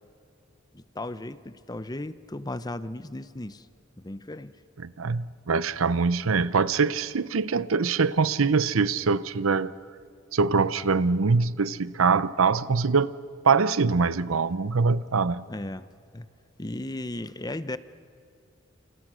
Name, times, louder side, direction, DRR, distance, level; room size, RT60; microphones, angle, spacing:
voice 1, 0.7-3.7 4.0-4.6 15.5-15.9 16.1-16.3 16.6-17.8, left 1 dB, 20° left, 13 dB, 0.8 m, -35 dB
voice 2, 4.8-9.7 10.3-13.1 13.4-15.4, right 4 dB, 90° right, 16 dB, 0.7 m, -23 dB
29.0 x 28.0 x 6.3 m, 2.4 s
head